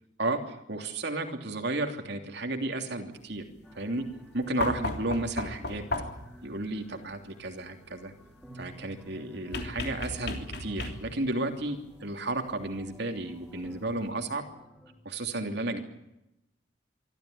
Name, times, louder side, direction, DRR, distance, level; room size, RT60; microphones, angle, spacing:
voice 1, 0.2-3.4 3.7-4.0 4.3-5.8 6.4-8.1 8.5-14.4 15.0-15.9, right 2 dB, 65° right, 4 dB, 3.0 m, -33 dB
sound 1, 3.6-14.9, right 1 dB, 5° left, 4.8 m, -53 dB
sound 2, 4.6-6.4 9.5-11.3 12.8-12.9, left 2 dB, 60° left, 3.3 m, -34 dB
25.0 x 14.0 x 10.0 m, 0.88 s
head